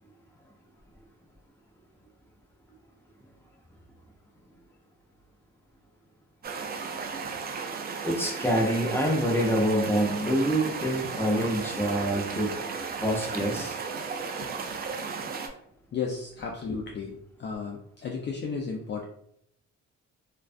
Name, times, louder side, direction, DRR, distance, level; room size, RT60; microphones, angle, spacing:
sound 1, 6.4-15.5, right 5 dB, 35° right, 0.4 m, -35 dB
voice 1, 8.0-12.6 13.0-13.8, equal, 5° left, -1 dB, 0.7 m, -26 dB
voice 2, 15.9-19.0, left 5 dB, 40° left, 0 dB, 0.4 m, -34 dB
2.3 x 2.2 x 2.4 m, 0.69 s
cardioid pair, 90°, 30 cm